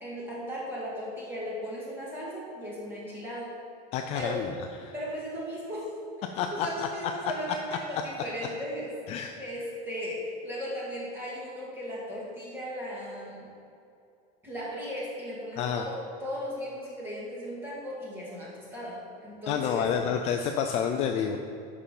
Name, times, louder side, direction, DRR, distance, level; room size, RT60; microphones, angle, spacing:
voice 1, 0.0-3.5 4.1-4.4 4.9-5.9 6.4-13.5 14.4-19.9, equal, 10° right, -6 dB, 2.1 m, -37 dB
voice 2, 3.9-4.5 4.8-4.9 6.3-6.9 9.1-9.4 15.6-15.9 19.5-21.4, left 7 dB, 35° left, 4 dB, 0.4 m, -29 dB
8.5 x 6.0 x 5.2 m, 2.6 s
cardioid pair, 180°, 20 cm